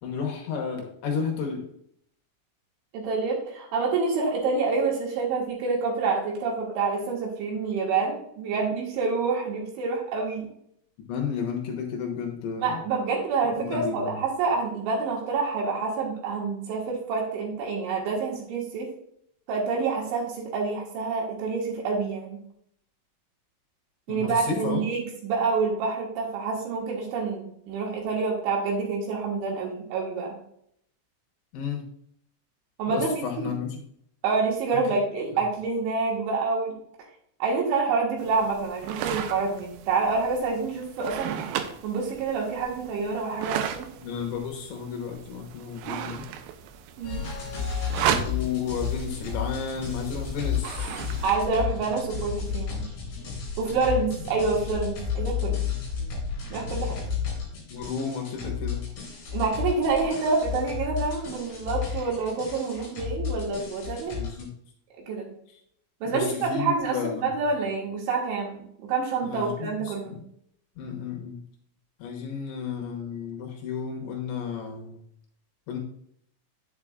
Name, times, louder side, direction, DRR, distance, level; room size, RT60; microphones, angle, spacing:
voice 1, 0.0-1.6 11.1-12.8 13.5-14.2 24.1-24.8 31.5-31.8 32.9-33.8 34.7-34.8 44.0-46.2 48.0-51.1 57.7-58.9 64.2-64.5 66.1-67.3 69.2-70.2 70.8-71.4 72.0-75.0 75.7-75.8, left 6 dB, 75° left, 2 dB, 3.1 m, -32 dB
voice 2, 2.9-10.5 12.6-18.9 19.5-22.4 24.1-30.4 32.8-33.5 34.2-36.8 37.4-41.4 41.8-43.9 47.0-47.2 51.2-52.9 53.6-55.6 56.5-57.0 59.3-64.2 65.1-65.3 66.0-70.1, right 4 dB, 70° right, -1 dB, 3.7 m, -27 dB
sound 1, 38.2-51.4, right 9 dB, 85° right, 3.2 m, -35 dB
sound 2, 47.0-64.4, left 7 dB, 40° left, 3.8 m, -32 dB
9.4 x 7.8 x 2.4 m, 0.70 s
omnidirectional pair, 6.0 m